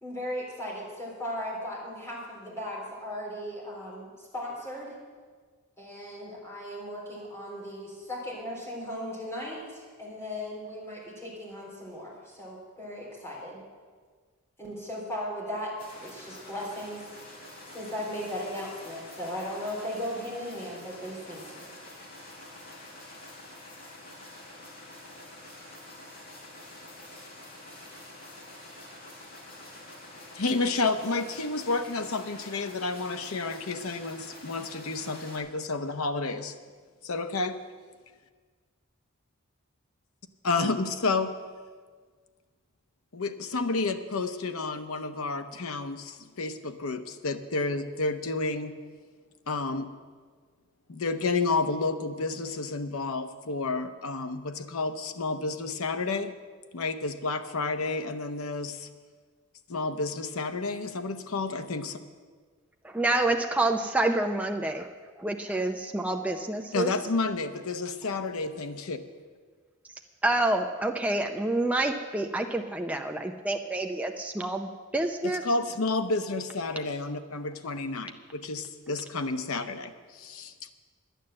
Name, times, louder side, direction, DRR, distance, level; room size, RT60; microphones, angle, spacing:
voice 1, 0.0-4.9 5.8-13.6 14.6-15.7 16.0-17.1 17.7-21.7, equal, 10° left, -5 dB, 3.6 m, -37 dB
sound 1, 15.8-35.4, left 1 dB, 45° left, 3.0 m, -47 dB
voice 2, 30.3-36.5 37.0-37.6 40.4-41.4 43.1-48.7 49.5-49.9 50.9-56.4 56.7-58.9 59.7-62.0 66.7-69.0 75.2-80.7, left 3 dB, 75° left, 8 dB, 0.8 m, -30 dB
voice 3, 62.8-64.9 65.2-66.9 70.2-75.4, right 2 dB, 5° right, 3 dB, 0.5 m, -28 dB
11.0 x 9.3 x 7.6 m, 1.5 s
head